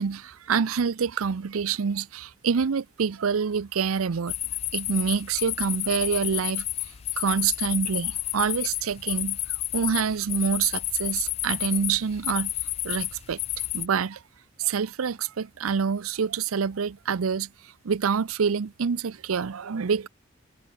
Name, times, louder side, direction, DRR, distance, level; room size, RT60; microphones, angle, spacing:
voice 1, 0.0-4.3 4.7-6.6 7.2-9.4 9.7-12.5 12.8-13.4 13.7-14.2 14.6-17.5 17.8-20.1, right 6 dB, 90° right, 0.6 m, -26 dB
sound 1, 4.3-13.9, left 14 dB, 30° left, 0.3 m, -31 dB
head